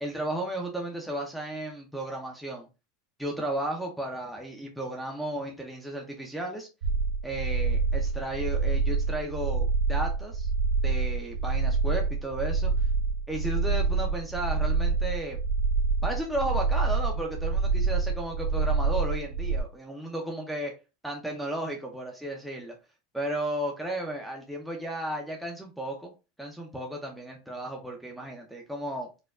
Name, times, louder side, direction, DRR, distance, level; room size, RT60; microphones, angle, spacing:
voice 1, 0.0-2.7 3.2-6.7 7.2-10.5 10.8-12.7 13.3-15.4 16.0-20.7 21.0-22.7 23.1-26.1 26.4-29.1, right 1 dB, ahead, -1 dB, 0.5 m, -34 dB
sound 1, 6.8-19.6, right 4 dB, 75° right, 0.5 m, -27 dB
4.3 x 2.2 x 2.3 m, 0.29 s
supercardioid pair, 155°, 0 cm